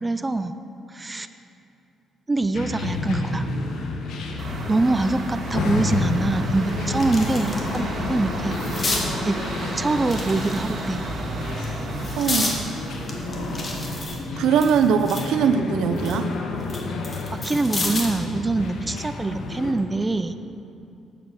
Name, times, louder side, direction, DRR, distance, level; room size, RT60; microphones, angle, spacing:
voice 1, 0.0-0.5 0.9-1.3 2.3-3.5 4.7-8.6 9.2-9.4 9.8-11.0 17.3-20.3, right 2 dB, 20° right, 10 dB, 0.4 m, -24 dB
sound 1, 2.5-19.7, left 3 dB, 75° left, 1.1 m, -30 dB
sound 2, 4.4-14.1, right 2 dB, 50° right, 1.6 m, -33 dB
sound 3, 5.8-5.9 6.3-7.8 8.1-9.1 10.0-10.9 11.5-12.6 13.1-15.3 15.7-18.2 19.6-19.8, left 2 dB, 35° left, 1.7 m, -31 dB
voice 2, 12.2-12.7 14.4-16.3, right 7 dB, 85° right, 9 dB, 0.5 m, -21 dB
9.3 x 7.6 x 6.3 m, 2.7 s
cardioid pair, 90°, 0 cm